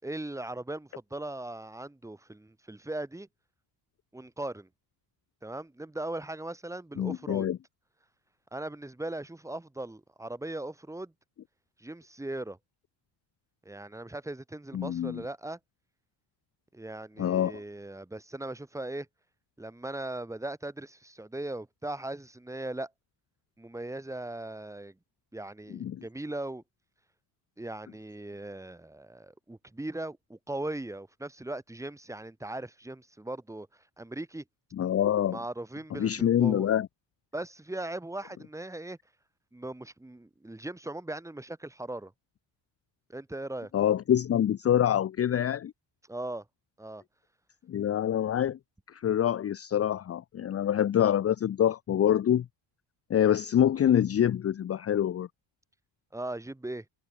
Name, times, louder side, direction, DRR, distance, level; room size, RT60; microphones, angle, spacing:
voice 1, 0.0-3.3 4.1-4.7 5.4-7.5 8.5-11.1 11.8-12.6 13.6-15.6 16.7-19.1 19.6-22.9 23.6-24.9 25.3-26.6 27.6-33.7 34.0-34.4 35.3-36.7 37.3-39.0 39.5-42.1 43.1-43.7 46.1-46.4 46.8-47.0 56.1-56.8, right 1 dB, 5° right, 4.6 m, -39 dB
voice 2, 7.0-7.6 14.7-15.2 17.2-17.5 25.8-26.0 34.7-35.4 35.9-36.9 43.7-45.7 47.7-48.6 48.9-52.4 53.1-55.3, left 10 dB, 30° left, 0.8 m, -26 dB
cardioid pair, 170°, 46 cm